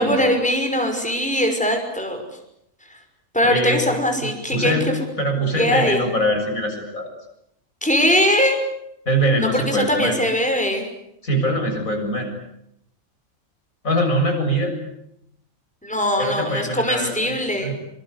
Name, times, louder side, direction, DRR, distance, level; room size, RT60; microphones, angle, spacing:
voice 1, 0.0-2.2 2.9-3.0 3.3-4.9 5.6-6.0 7.8-8.6 9.4-10.9 15.8-17.7, equal, 5° left, 4 dB, 5.9 m, -21 dB
voice 2, 3.4-3.8 4.5-4.9 5.2-7.1 9.1-10.2 11.2-12.3 13.8-14.7 16.2-17.7, equal, 80° left, 3 dB, 7.7 m, -22 dB
27.0 x 26.0 x 8.3 m, 0.77 s
omnidirectional pair, 1.4 m